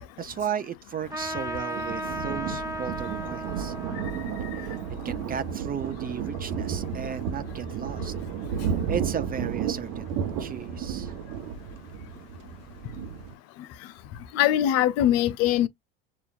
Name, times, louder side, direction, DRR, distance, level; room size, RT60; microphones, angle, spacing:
voice 1, 0.0-3.7 4.5-4.8 5.0-8.1 8.5-10.1 10.4-11.1, right 8 dB, 30° right, 0.6 m, -35 dB
Thunder, 1.0-13.3, right 7 dB, 65° right, 0.9 m, -33 dB
Trumpet, 1.1-6.1, equal, 10° right, 1.6 m, -36 dB
voice 2, 14.3-15.7, left 12 dB, 55° left, 0.6 m, -21 dB
6.8 x 2.5 x 2.4 m
hypercardioid pair, 75°, 29 cm